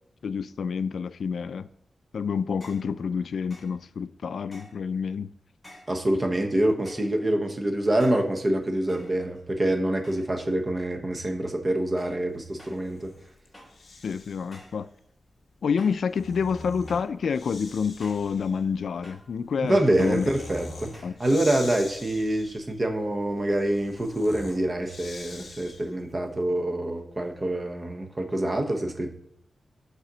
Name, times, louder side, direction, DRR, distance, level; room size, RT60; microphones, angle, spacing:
voice 1, 0.2-1.7 2.1-5.3 14.0-14.9 15.6-20.3 21.0-21.1, left 6 dB, 80° left, 0.3 m, -28 dB
sound 1, 2.6-2.9 3.5-3.8 4.5-4.9 5.6-6.0 6.8-7.2 8.0-8.3 8.9-9.5 10.0-10.4 10.7-11.2 12.0-12.3 12.6-12.9 13.5-13.8 14.5-14.8 15.8-16.1 16.9-17.2 18.0-18.3 19.0-19.3 20.0-20.3 20.9-21.2, left 1 dB, 10° left, 2.9 m, -51 dB
voice 2, 5.9-13.1 19.6-29.1, right 1 dB, 25° right, 0.9 m, -26 dB
Breathing, 12.6-14.6 15.8-26.1, left 2 dB, 50° left, 1.2 m, -44 dB
6.5 x 4.1 x 6.1 m
wide cardioid pair, 170°, 0 cm